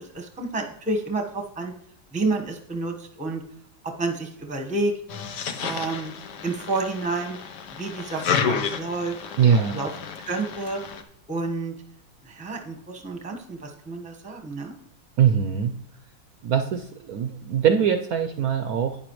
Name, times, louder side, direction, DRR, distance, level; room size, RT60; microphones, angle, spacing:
voice 1, 0.0-1.7 2.1-3.4 3.8-4.9 5.6-6.1 6.4-7.4 7.7-9.2 9.5-9.9 10.2-10.8 11.3-11.7 12.2-14.7, right 3 dB, 5° right, 2 dB, 0.9 m, -29 dB
sound 1, 5.1-11.0, left 6 dB, 70° left, 1.5 m, -31 dB
voice 2, 9.4-9.8 15.2-15.8 16.4-19.0, right 8 dB, 65° right, 7 dB, 0.9 m, -22 dB
11.0 x 9.5 x 3.1 m, 0.71 s
omnidirectional pair, 1.9 m